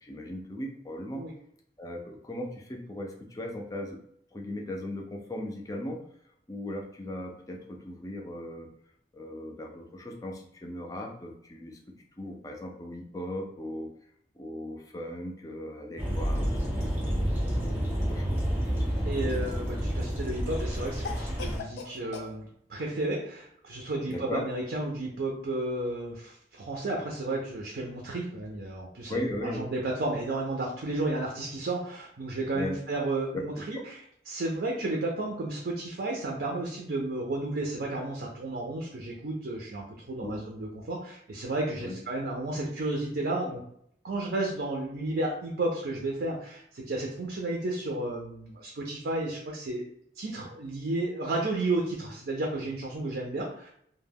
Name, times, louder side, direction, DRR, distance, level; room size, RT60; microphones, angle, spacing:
voice 1, 0.0-1.2 1.8-4.0 4.3-6.0 6.5-8.7 9.1-11.8 12.2-13.9 14.4-16.9 17.8-18.4 24.1-24.4 29.1-29.7 32.5-32.8 33.3-33.4 33.7-33.8 40.2-40.4 41.8-42.0, left 1 dB, 20° left, 2 dB, 0.4 m, -37 dB
sound 1, 16.0-21.6, equal, 10° right, 0.7 m, -29 dB
Cough, 18.7-19.5 21.0-22.3, left 5 dB, 75° left, 0.5 m, -41 dB
voice 2, 19.0-34.0 34.3-43.6 44.0-49.8 50.2-53.7, right 2 dB, 65° right, -1 dB, 0.5 m, -32 dB
2.2 x 2.1 x 3.4 m, 0.69 s
head